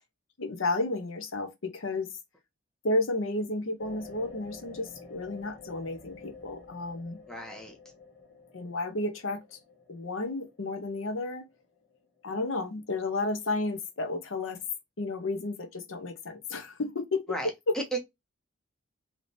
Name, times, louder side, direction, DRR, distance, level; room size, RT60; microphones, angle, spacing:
voice 1, 0.4-2.1 2.8-7.2 8.5-9.6 9.9-11.4 12.2-14.6 15.0-17.2 17.7-17.8, left 2 dB, 85° left, 0.8 m, -32 dB
sound 1, 3.8-12.5 13.1-13.2, left 4 dB, 60° left, 1.4 m, -50 dB
voice 2, 7.3-7.8 17.3-18.0, right 2 dB, 5° left, 0.7 m, -34 dB
3.3 x 2.8 x 2.6 m
head